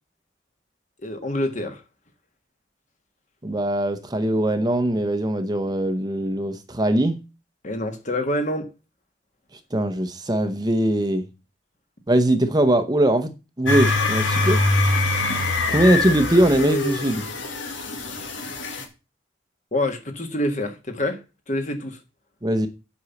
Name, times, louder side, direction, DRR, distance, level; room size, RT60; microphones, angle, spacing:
voice 1, 1.0-1.8 7.6-8.7 19.7-21.2 21.5-22.0, left 1 dB, 40° left, 1.5 m, -26 dB
voice 2, 3.4-7.2 9.7-11.2 12.1-14.6 15.7-17.3 22.4-22.7, right 1 dB, 20° right, 0.8 m, -21 dB
sound 1, 13.7-18.8, left 2 dB, 85° left, 1.9 m, -23 dB
8.0 x 5.4 x 7.0 m
head